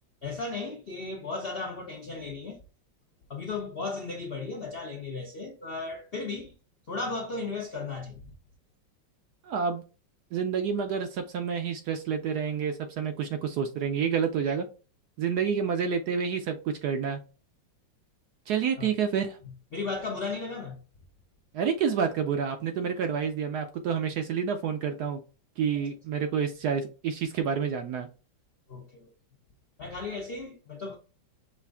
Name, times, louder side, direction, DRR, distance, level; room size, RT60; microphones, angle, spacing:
voice 1, 0.2-2.6 3.3-6.5 6.9-8.3 18.8-18.9 19.7-20.8 28.7-29.1 29.8-31.0, left 3 dB, 65° left, 0.5 m, -35 dB
voice 2, 9.4-9.8 10.3-14.7 15.2-17.2 18.5-19.4 21.5-25.2 25.6-28.1, right 7 dB, 70° right, 1.0 m, -29 dB
5.7 x 2.5 x 3.5 m
omnidirectional pair, 2.1 m